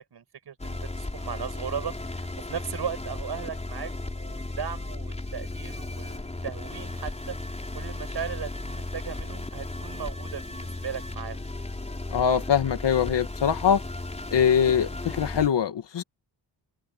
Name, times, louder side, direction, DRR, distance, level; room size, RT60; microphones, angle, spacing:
voice 1, 0.1-7.4 7.7-11.5, right 7 dB, 70° right, 7.0 m, -37 dB
sound 1, 0.6-15.5, left 2 dB, 15° left, 4.6 m, -35 dB
voice 2, 12.1-13.8 14.3-16.0, left 8 dB, 85° left, 2.3 m, -23 dB
open air
wide cardioid pair, 180°, 41 cm